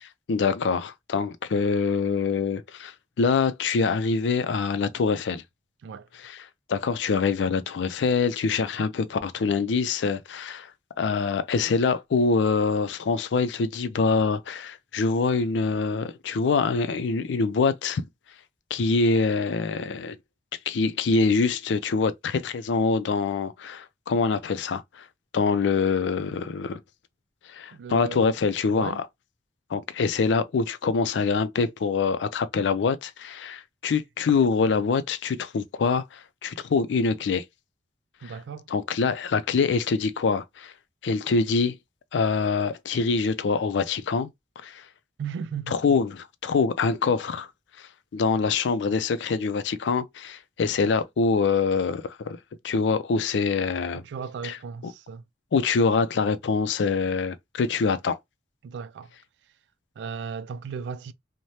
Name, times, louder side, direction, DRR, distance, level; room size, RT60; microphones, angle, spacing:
voice 1, 0.3-5.4 6.2-6.4 6.7-10.7 11.0-18.0 18.7-20.2 20.7-25.0 25.3-26.8 27.5-29.0 29.7-37.4 38.2-38.3 38.7-40.7 41.0-41.8 42.1-44.3 44.6-44.8 45.7-47.5 48.1-52.4 52.6-54.0 54.4-54.6 54.8-54.9 55.5-58.2, left 4 dB, 85° left, 0.4 m, -25 dB
voice 2, 27.7-28.3 28.7-29.0 38.2-38.7 45.2-45.8 53.9-55.2 58.6-59.1 60.0-61.1, right 6 dB, 75° right, 0.3 m, -36 dB
3.2 x 2.1 x 2.7 m
head